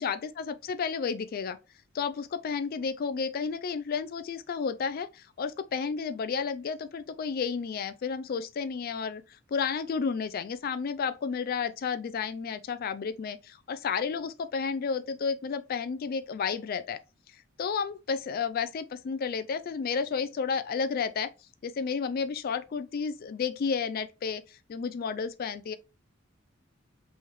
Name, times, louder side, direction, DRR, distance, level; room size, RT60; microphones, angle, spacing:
voice 1, 0.0-1.6 1.9-9.2 9.5-17.0 17.6-21.3 21.6-25.8, left 5 dB, 50° left, 0.3 m, -32 dB
5.5 x 3.2 x 3.0 m
head